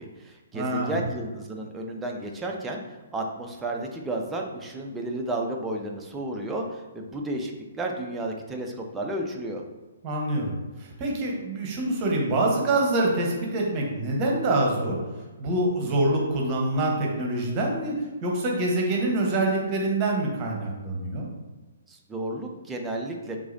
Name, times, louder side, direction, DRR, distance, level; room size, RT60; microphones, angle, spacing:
voice 1, 0.0-2.8 3.1-9.6 21.9-23.4, right 1 dB, 10° right, 1 dB, 0.6 m, -32 dB
voice 2, 0.5-1.0 10.0-10.5 10.8-15.0 15.4-21.3, right 2 dB, 30° right, -1 dB, 1.0 m, -25 dB
4.8 x 3.7 x 2.7 m, 1.2 s
figure-of-eight pair, 125°, 0 cm